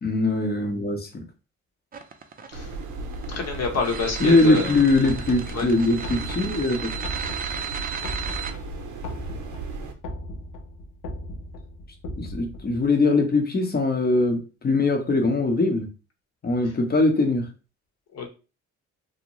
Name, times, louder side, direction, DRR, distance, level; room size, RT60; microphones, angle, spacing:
voice 1, 0.0-1.1 4.2-6.9 12.2-15.9 16.4-17.5, left 2 dB, 30° left, 4 dB, 0.8 m, -21 dB
sound 1, 1.9-8.5, right 7 dB, 30° right, 0.5 m, -34 dB
sound 2, 2.5-9.9, right 3 dB, 85° right, 0.6 m, -36 dB
voice 2, 3.3-4.8 5.5-5.7 16.6-16.7 18.1-18.3, left 4 dB, 60° left, 2 dB, 0.9 m, -28 dB
sound 3, 5.0-12.9, left 1 dB, 80° left, 0.6 m, -38 dB
2.5 x 2.1 x 2.9 m, 0.32 s
cardioid pair, 90°, 30 cm